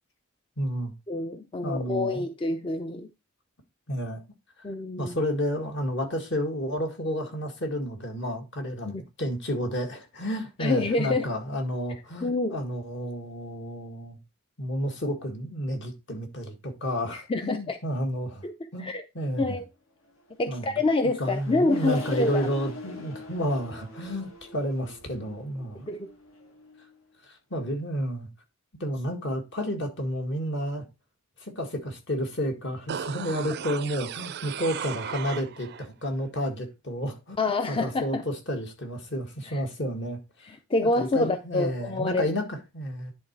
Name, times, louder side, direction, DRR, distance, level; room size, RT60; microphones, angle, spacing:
voice 1, 0.6-0.9 1.6-2.3 3.9-4.2 5.0-14.2 14.6-18.4 18.7-18.9 19.1-19.6 20.5-20.6 21.2-25.9 27.5-28.3 28.8-30.9 31.4-40.2 41.0-43.1, equal, 55° left, 1.9 m, -31 dB
voice 2, 1.1-3.1 4.6-5.2 8.8-9.0 10.6-11.3 12.2-12.6 17.1-17.8 18.4-18.5 18.8-19.0 19.4-19.6 20.4-22.5 25.9-26.1 37.4-38.2 39.5-39.6 40.4-42.3, left 2 dB, 25° left, 0.5 m, -27 dB
Accelerating revving vroom, 20.3-27.0, left 1 dB, 75° left, 1.7 m, -43 dB
sound 1, 32.9-35.9 36.2-36.3, right 8 dB, 50° right, 0.4 m, -36 dB
10.5 x 3.8 x 4.6 m
head